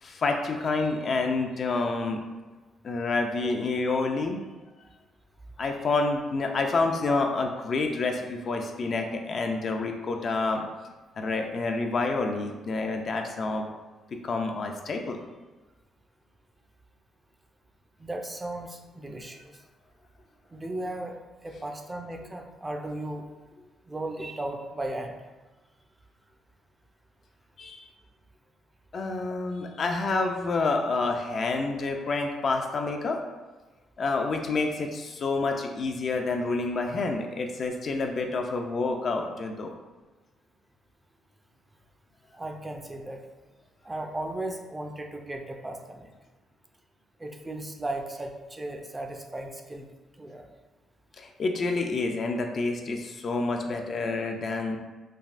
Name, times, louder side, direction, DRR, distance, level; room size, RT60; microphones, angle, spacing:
voice 1, 0.0-2.2 2.8-4.4 5.6-10.6 11.2-13.7 14.2-15.2 27.6-27.8 28.9-33.2 34.0-39.7 51.2-54.8, left 3 dB, 50° left, 3 dB, 0.3 m, -28 dB
voice 2, 18.0-19.6 20.5-21.2 21.4-23.3 23.8-25.2 42.3-43.2 43.8-46.1 47.2-49.9 50.2-50.5, right 1 dB, 20° right, 3 dB, 0.4 m, -36 dB
3.3 x 2.3 x 2.4 m, 1.2 s
cardioid pair, 90°, 0 cm